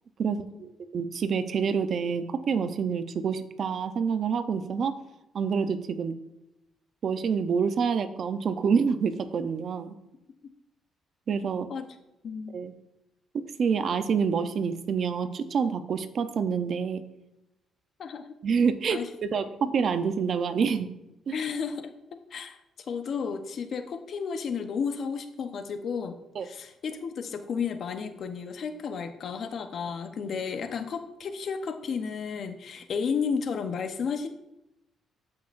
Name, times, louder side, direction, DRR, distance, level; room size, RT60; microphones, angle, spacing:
voice 1, 0.2-4.9 5.3-6.1 7.0-10.0 11.3-11.7 12.5-12.7 13.3-17.0 18.4-20.9 21.3-21.4 26.4-26.5, right 6 dB, 55° right, 10 dB, 0.7 m, -27 dB
voice 2, 12.2-12.5 18.0-18.3 18.9-19.1 21.3-21.9 22.3-22.6 22.9-34.3, left 6 dB, 60° left, 8 dB, 0.9 m, -32 dB
13.5 x 5.8 x 2.6 m, 0.89 s
cardioid pair, 90°, 0 cm